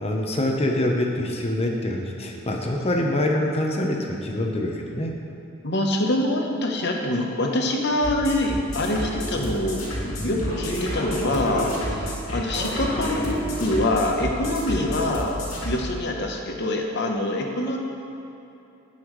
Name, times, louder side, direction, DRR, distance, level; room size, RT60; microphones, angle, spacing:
voice 1, 0.0-5.1 10.2-10.4 11.9-12.1, left 1 dB, 30° left, 1 dB, 1.0 m, -25 dB
voice 2, 5.6-15.4 15.6-17.8, left 1 dB, 55° left, 1 dB, 1.0 m, -25 dB
sound 1, 8.0-15.8, equal, 90° left, 2.3 m, -30 dB
16.5 x 5.7 x 3.2 m, 2.8 s
head